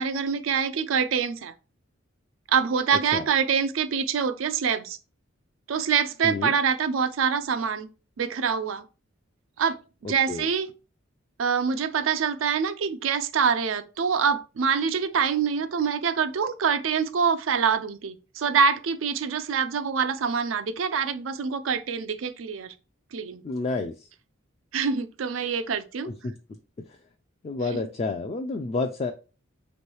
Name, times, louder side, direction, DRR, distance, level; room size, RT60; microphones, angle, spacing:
voice 1, 0.0-1.5 2.5-5.0 5.7-7.9 8.2-8.9 9.6-9.8 10.0-10.7 11.4-22.7 23.1-23.4 24.7-26.1 27.7-27.8, right 6 dB, 90° right, 0.5 m, -25 dB
voice 2, 23.4-23.9 26.0-26.3 27.4-29.1, left 3 dB, 30° left, 0.3 m, -29 dB
3.2 x 3.0 x 4.4 m
head